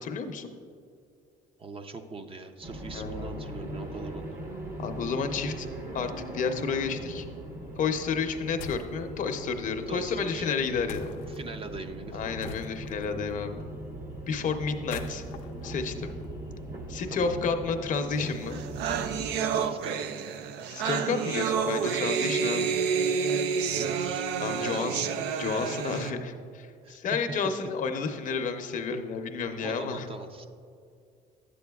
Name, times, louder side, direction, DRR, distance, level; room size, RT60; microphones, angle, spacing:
voice 1, 0.0-0.5 2.9-3.5 4.8-5.7 5.9-7.3 7.8-11.2 12.1-13.7 14.3-15.2 15.6-16.1 16.9-18.6 20.7-22.8 24.4-25.0 25.4-30.0, left 5 dB, 50° left, 6 dB, 0.6 m, -31 dB
voice 2, 1.6-4.4 9.9-10.5 11.2-12.5 17.1-17.4 19.4-20.0 23.7-24.3 24.5-25.0 26.8-27.0 27.4-27.5 29.6-30.5, right 3 dB, 35° right, 7 dB, 0.5 m, -41 dB
sound 1, 2.6-19.3, right 1 dB, 50° right, 1.0 m, -40 dB
sound 2, 8.6-9.0 10.9-11.4 12.4-13.0 14.7-16.7, left 6 dB, 90° left, 0.5 m, -43 dB
sound 3, 18.2-18.3 18.5-26.1, right 6 dB, 90° right, 0.4 m, -29 dB
11.0 x 8.3 x 2.3 m, 2.3 s
cardioid pair, 110°, 17 cm